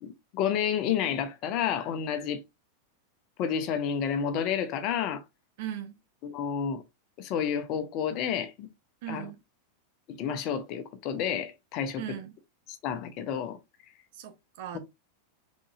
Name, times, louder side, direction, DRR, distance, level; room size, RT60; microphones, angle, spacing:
voice 1, 0.0-2.4 3.4-5.2 6.2-6.8 7.2-8.7 9.1-9.3 10.1-12.0 12.7-13.6 14.7-14.8, left 8 dB, 40° left, 0.7 m, -30 dB
voice 2, 5.6-6.0 9.0-9.4 12.0-12.4 14.2-14.8, right 11 dB, 50° right, 0.9 m, -38 dB
4.0 x 3.8 x 2.5 m
figure-of-eight pair, 90°, 0 cm